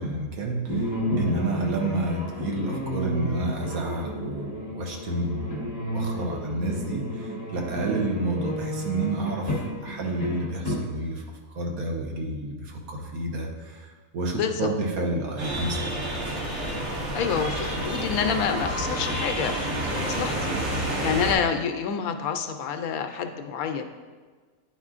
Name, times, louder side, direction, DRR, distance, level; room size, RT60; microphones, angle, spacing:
voice 1, 0.0-11.2 11.5-16.0, right 2 dB, 85° right, 0 dB, 1.4 m, -30 dB
sound 1, 0.7-10.7, equal, 15° left, 1.1 m, -31 dB
voice 2, 14.3-14.7 17.1-20.5 21.0-23.9, left 7 dB, 80° left, 6 dB, 1.0 m, -28 dB
sound 2, 15.4-21.3, right 1 dB, 55° right, 1.5 m, -29 dB
9.7 x 4.3 x 2.5 m, 1.5 s
omnidirectional pair, 1.5 m